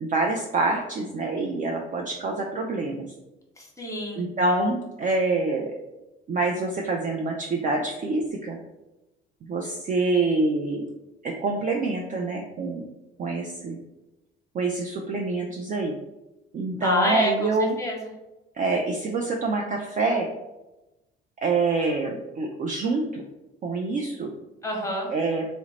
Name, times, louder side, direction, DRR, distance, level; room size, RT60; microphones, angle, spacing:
voice 1, 0.0-3.1 4.2-5.7 6.3-8.6 9.4-10.9 11.2-12.9 13.2-13.8 14.5-16.0 16.5-17.8 18.6-20.3 21.4-23.2 23.6-24.3 25.1-25.5, right 3 dB, 25° right, 1 dB, 0.4 m, -26 dB
voice 2, 3.6-4.3 16.8-17.5 17.8-18.0 24.6-25.1, equal, 10° left, 0 dB, 0.9 m, -27 dB
2.8 x 2.1 x 4.0 m, 1.0 s
figure-of-eight pair, 50°, 31 cm